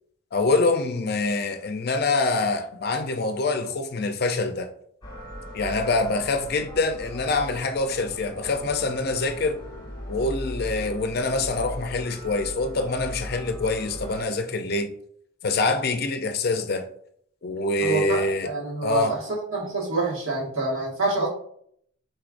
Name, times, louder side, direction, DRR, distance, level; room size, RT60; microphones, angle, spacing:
voice 1, 0.3-4.7 5.5-9.6 10.1-14.9 15.4-16.9 17.4-18.5 18.8-19.2, left 3 dB, 50° left, 0.5 m, -25 dB
sound 1, 5.0-14.2, left 1 dB, 20° left, 1.0 m, -38 dB
voice 2, 17.8-19.2 19.5-21.3, right 3 dB, 75° right, 1.6 m, -27 dB
4.6 x 4.5 x 2.5 m
head